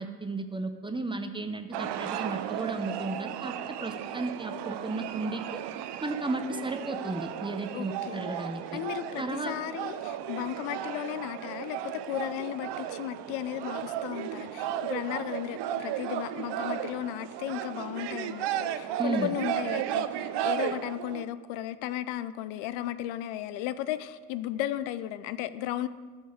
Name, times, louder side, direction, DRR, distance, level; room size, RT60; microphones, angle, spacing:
voice 1, 0.0-5.6 6.0-8.8 9.2-9.5 19.0-19.3, right 2 dB, 10° right, 7 dB, 0.8 m, -34 dB
sound 1, 1.7-21.3, right 10 dB, 60° right, 0.7 m, -35 dB
voice 2, 7.7-8.4 8.7-25.9, left 12 dB, 70° left, 14 dB, 0.6 m, -35 dB
13.0 x 4.6 x 5.2 m, 1.5 s
supercardioid pair, 70°, 47 cm